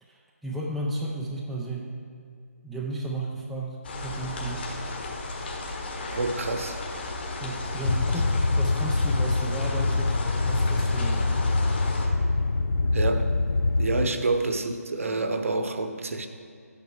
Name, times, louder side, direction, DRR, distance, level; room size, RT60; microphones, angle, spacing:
voice 1, 0.0-1.9 2.6-3.8 4.0-4.7 7.4-10.2 10.4-11.4, right 2 dB, ahead, -5 dB, 0.3 m, -34 dB
sound 1, 3.8-12.1, left 2 dB, 40° left, 1.5 m, -34 dB
voice 2, 6.1-6.8 12.8-13.3 13.8-16.3, right 3 dB, 60° right, 7 dB, 0.9 m, -28 dB
sound 2, 7.8-14.1, left 3 dB, 85° left, 0.4 m, -24 dB
11.5 x 8.9 x 3.6 m, 2.3 s
figure-of-eight pair, 160°, 8 cm